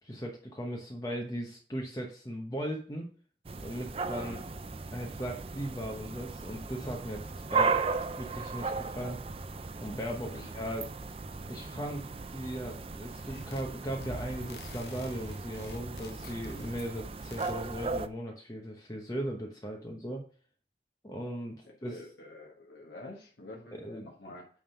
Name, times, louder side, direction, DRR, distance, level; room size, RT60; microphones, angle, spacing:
voice 1, 0.0-3.1 3.6-4.4 4.9-7.8 8.2-9.2 9.8-10.9 11.5-12.0 12.3-20.2 21.0-22.0 23.7-24.1, equal, 20° left, 0 dB, 1.0 m, -38 dB
sound 1, 3.4-18.1, right 4 dB, 30° right, 0.4 m, -36 dB
voice 2, 4.2-4.5 10.2-10.5 21.6-24.5, left 2 dB, 90° left, -2 dB, 1.4 m, -48 dB
sound 2, 13.3-13.7 14.0-17.0 17.3-17.6, left 3 dB, 65° left, 0.6 m, -47 dB
9.0 x 3.6 x 5.6 m, 0.42 s
head